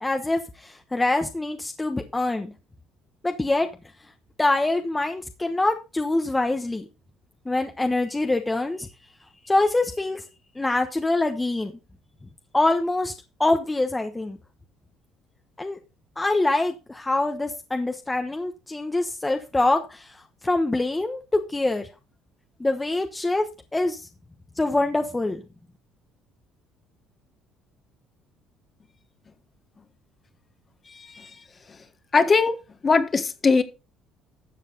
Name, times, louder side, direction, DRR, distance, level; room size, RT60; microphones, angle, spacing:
voice 1, 0.0-2.5 3.2-3.7 4.4-6.8 7.5-8.9 9.4-10.2 10.6-11.7 12.5-13.1 13.4-14.4 15.6-15.8 16.2-21.2 21.5-21.9 22.6-23.5 23.7-24.1 24.6-25.4, left 2 dB, 15° left, 1.1 m, -24 dB
voice 2, 32.1-32.6 32.8-33.6, left 4 dB, 30° left, 1.4 m, -19 dB
12.5 x 7.3 x 3.9 m
cardioid pair, 110°, 0 cm